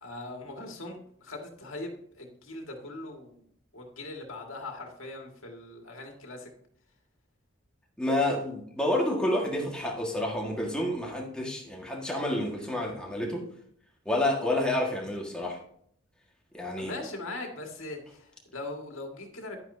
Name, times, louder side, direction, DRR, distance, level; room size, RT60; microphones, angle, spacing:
voice 1, 0.0-3.4 3.7-6.5 16.8-19.6, left 2 dB, 75° left, 2 dB, 1.9 m, -40 dB
voice 2, 8.0-13.5 14.0-15.6 16.5-16.9, left 1 dB, 5° left, -2 dB, 1.6 m, -29 dB
10.5 x 8.9 x 2.7 m, 0.65 s
head